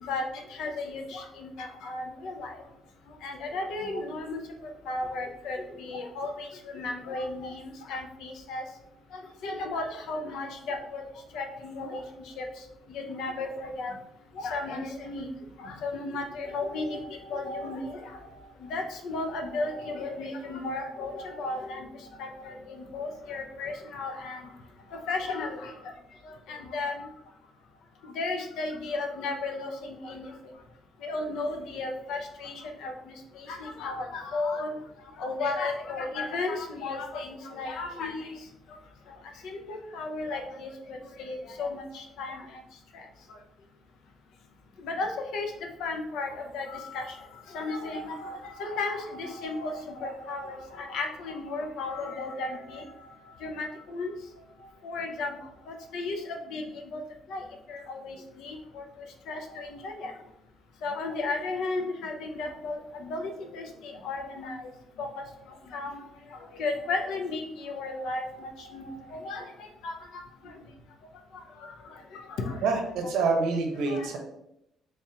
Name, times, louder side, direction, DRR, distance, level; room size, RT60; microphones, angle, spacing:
voice 1, 0.0-2.6 3.2-4.4 4.9-8.6 9.1-11.0 11.3-12.0 12.4-12.5 12.9-14.0 14.4-15.3 15.6-18.2 18.6-21.9 22.2-24.5 24.9-25.9 26.2-27.0 28.2-30.3 31.0-34.7 35.2-38.3 39.4-42.4 44.8-45.5 45.8-47.2 47.5-52.9 53.4-54.1 54.8-55.4 55.7-57.0 57.3-60.1 60.8-64.6 65.0-65.1 65.7-66.0 66.3-70.0 70.4-70.5 71.3-72.6 73.9-74.1, left 3 dB, 65° left, 3 dB, 0.6 m, -34 dB
voice 2, 72.6-74.2, right 4 dB, 75° right, 3 dB, 0.7 m, -26 dB
3.5 x 3.3 x 2.8 m, 0.82 s
cardioid pair, 180°, 0 cm